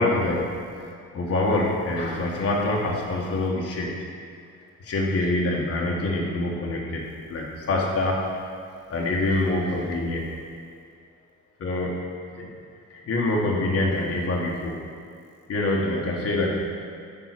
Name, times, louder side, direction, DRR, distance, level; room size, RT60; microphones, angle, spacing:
voice 1, 0.0-4.0 4.8-8.2 8.9-10.3 11.6-12.5 12.9-14.8 15.5-16.7, left 2 dB, 50° left, -2 dB, 1.1 m, -25 dB
8.5 x 3.6 x 5.8 m, 2.2 s
cardioid pair, 90°, 30 cm